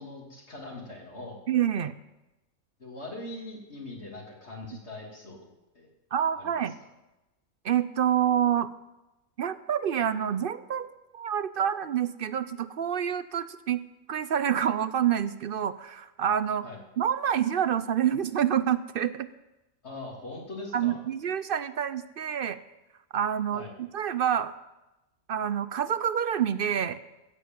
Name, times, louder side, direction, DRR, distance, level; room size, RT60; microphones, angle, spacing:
voice 1, 0.0-1.4 2.8-5.5 5.7-5.9 6.3-6.7 16.6-16.8 19.8-21.0 23.5-23.7, left 2 dB, 55° left, -1 dB, 3.2 m, -41 dB
voice 2, 1.5-2.0 6.1-6.7 7.6-8.7 9.4-10.9 11.1-13.8 14.1-16.7 17.0-19.3 20.7-22.6 23.1-24.5 25.3-27.0, right 9 dB, 55° right, 14 dB, 0.6 m, -27 dB
15.5 x 7.9 x 7.6 m, 0.99 s
omnidirectional pair, 1.4 m